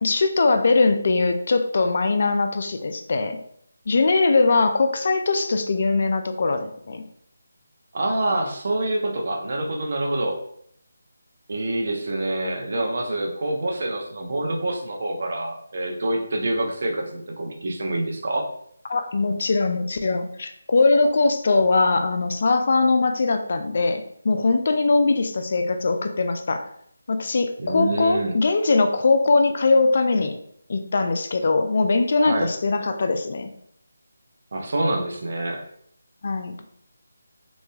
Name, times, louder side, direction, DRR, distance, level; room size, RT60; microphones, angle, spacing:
voice 1, 0.0-3.4 3.9-7.0 18.9-26.7 27.1-30.3 30.7-33.5 36.2-36.6, left 3 dB, 50° left, 7 dB, 0.3 m, -21 dB
voice 2, 7.9-10.3 11.5-18.4 27.6-28.4 32.2-32.5 34.5-35.6, right 1 dB, 55° right, 1 dB, 0.6 m, -26 dB
3.0 x 2.6 x 2.2 m, 0.67 s
figure-of-eight pair, 160°, 0 cm